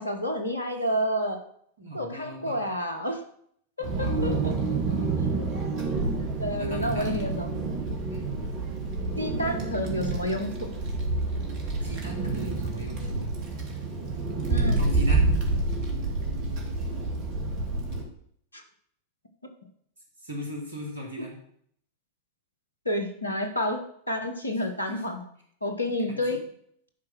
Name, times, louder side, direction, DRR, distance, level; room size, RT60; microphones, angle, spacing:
voice 1, 0.0-1.4 1.9-3.2 3.8-4.5 6.4-7.5 9.2-10.7 14.5-14.8 18.5-18.6 22.8-25.2 25.6-26.4, left 1 dB, 80° left, 6 dB, 1.3 m, -29 dB
voice 2, 1.8-2.6 3.8-5.1 6.6-7.2 8.1-8.3 11.8-13.3 14.7-15.3 20.2-21.4 24.9-25.0 25.8-26.4, equal, 70° right, 0 dB, 2.9 m, -38 dB
Wind, 3.8-18.0, right 3 dB, 45° right, 2.2 m, -28 dB
11.0 x 4.9 x 6.1 m, 0.66 s
figure-of-eight pair, 90°, 0 cm